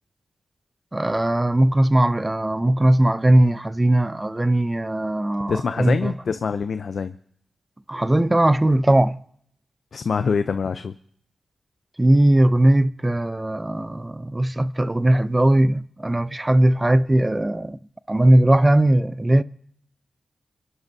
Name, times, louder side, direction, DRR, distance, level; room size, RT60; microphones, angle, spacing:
voice 1, 0.9-6.1 7.9-9.2 12.0-17.8 18.1-19.4, right 1 dB, 20° right, 0.6 m, -19 dB
voice 2, 5.5-7.1 9.9-10.9, left 5 dB, 75° left, 0.5 m, -25 dB
29.5 x 11.0 x 2.7 m
cardioid pair, 50°, 0 cm